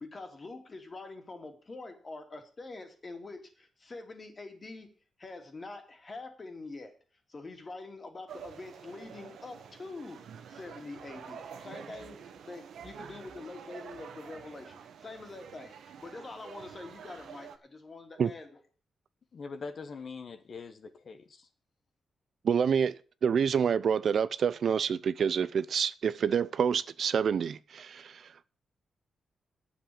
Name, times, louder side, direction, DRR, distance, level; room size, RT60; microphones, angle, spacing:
voice 1, 0.0-4.9 5.2-6.9 7.3-18.5, left 3 dB, 30° left, 2.6 m, -45 dB
sound 1, 8.3-17.6, right 7 dB, 80° right, 1.4 m, -48 dB
voice 2, 19.3-21.5, left 4 dB, 50° left, 1.2 m, -43 dB
voice 3, 22.4-28.3, right 7 dB, 60° right, 0.5 m, -28 dB
9.1 x 7.4 x 8.5 m
cardioid pair, 120°, 0 cm